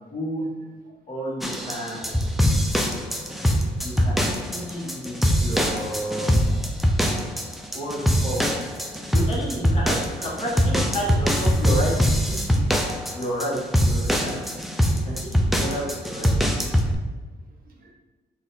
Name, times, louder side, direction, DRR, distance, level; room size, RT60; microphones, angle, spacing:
voice 1, 0.1-0.5 1.1-2.2 3.8-4.2 4.5-6.3 7.7-8.5 9.1-12.6 13.1-14.4 15.0-16.3, equal, 30° left, -6 dB, 1.1 m, -31 dB
sound 1, 1.4-16.9, equal, ahead, 0.4 m, -23 dB
voice 2, 2.7-3.2 4.6-5.0 6.5-6.6 7.1-7.5 14.0-14.1 17.7-17.9, right 2 dB, 55° right, 1 dB, 0.8 m, -47 dB
4.0 x 2.5 x 3.9 m, 1.2 s
cardioid pair, 110°, 18 cm